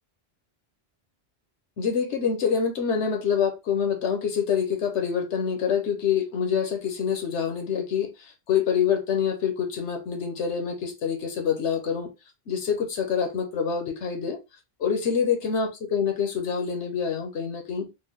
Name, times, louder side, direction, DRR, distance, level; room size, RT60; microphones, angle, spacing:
voice 1, 1.8-12.1 12.5-14.4 14.8-17.9, left 7 dB, 80° left, 1.1 m, -26 dB
4.4 x 2.1 x 3.0 m
omnidirectional pair, 1.2 m